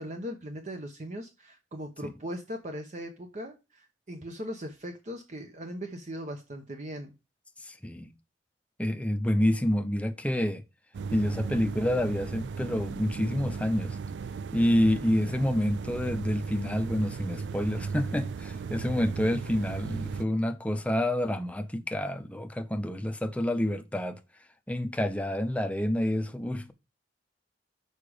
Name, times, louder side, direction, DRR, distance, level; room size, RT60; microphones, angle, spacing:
voice 1, 0.0-7.1, equal, 40° right, 0.9 m, -39 dB
voice 2, 7.6-8.1 8.8-10.6 11.1-14.0 14.5-24.2 24.7-26.7, left 1 dB, 10° left, 0.6 m, -28 dB
sound 1, 10.9-20.3, right 5 dB, 75° right, 0.3 m, -36 dB
6.8 x 4.9 x 4.9 m
head